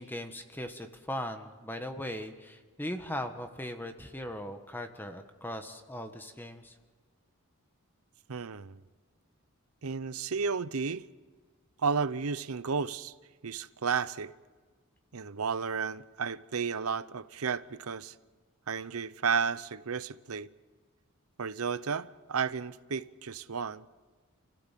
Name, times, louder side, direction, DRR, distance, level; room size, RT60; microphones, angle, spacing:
voice 1, 0.0-6.8, left 1 dB, 10° left, 1.4 m, -39 dB
voice 2, 8.3-8.8 9.8-11.1 11.8-13.1 13.4-14.3 15.1-18.1 18.7-20.5 21.4-23.9, right 5 dB, 80° right, 0.7 m, -32 dB
28.5 x 16.5 x 7.5 m
head